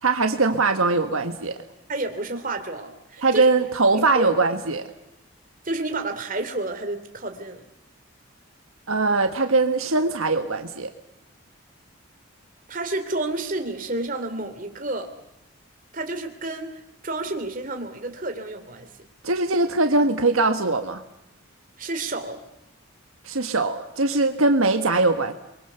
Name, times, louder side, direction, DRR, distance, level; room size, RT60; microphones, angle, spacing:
voice 1, 0.0-1.6 3.2-4.9 8.9-10.9 19.2-21.0 23.2-25.3, right 3 dB, 80° right, 6 dB, 1.6 m, -21 dB
voice 2, 1.9-3.5 3.9-4.3 5.6-7.6 12.7-15.1 15.9-16.7 17.0-18.9 21.8-22.4, right 2 dB, 40° right, 6 dB, 3.0 m, -30 dB
29.5 x 23.0 x 7.0 m, 0.88 s
head